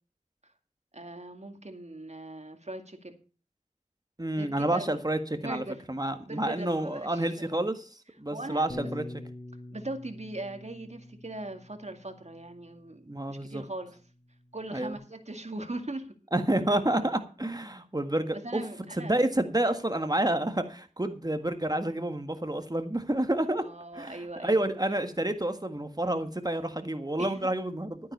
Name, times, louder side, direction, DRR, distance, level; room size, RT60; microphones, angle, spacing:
voice 1, 0.9-3.2 4.3-5.0 5.4-5.9 6.2-7.4 8.3-8.9 9.7-14.0 14.5-16.1 18.3-19.2 23.6-24.7 27.2-27.5, right 2 dB, 55° right, 5 dB, 2.1 m, -40 dB
voice 2, 4.2-7.9 8.2-9.0 13.0-13.6 14.7-15.0 16.3-18.6 19.0-23.6 23.9-28.0, right 1 dB, 30° right, 8 dB, 1.6 m, -29 dB
Bass guitar, 8.7-14.9, left 1 dB, 45° left, 1.6 m, -46 dB
12.5 x 9.5 x 5.4 m, 0.37 s
wide cardioid pair, 50°, 14 cm